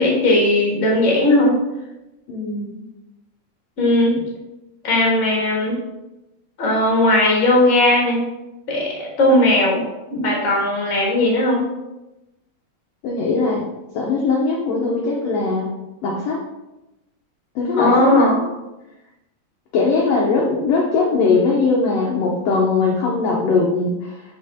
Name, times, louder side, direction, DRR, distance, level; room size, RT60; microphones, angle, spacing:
voice 1, 0.0-1.6 3.8-4.1 4.8-5.8 6.6-8.2 8.7-9.8 10.1-11.6 17.8-18.4, left 1 dB, 35° left, -3 dB, 1.2 m, -17 dB
voice 2, 2.3-2.8 13.0-13.6 13.9-15.7 16.0-16.4 17.5-18.5 19.7-24.2, left 4 dB, 80° left, -3 dB, 1.4 m, -20 dB
6.2 x 5.1 x 3.5 m, 0.98 s
omnidirectional pair, 4.1 m